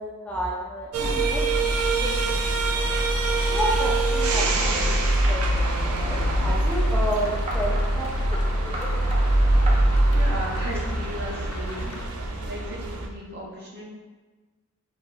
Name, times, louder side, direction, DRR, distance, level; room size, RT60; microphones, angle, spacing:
voice 1, 0.0-2.8 3.5-8.9 12.3-12.5, right 1 dB, 5° left, -4 dB, 0.4 m, -32 dB
sound 1, 0.9-13.1, right 1 dB, 80° right, 0.5 m, -23 dB
sound 2, 2.8-12.1, left 2 dB, 90° left, 0.6 m, -42 dB
sound 3, 4.6-6.4 7.5-7.9 8.3-8.5 8.7-9.2 9.7-9.8, right 2 dB, 30° right, 0.6 m, -37 dB
voice 2, 10.1-13.8, equal, 50° right, -4 dB, 1.0 m, -36 dB
3.9 x 2.8 x 3.8 m, 1.3 s
head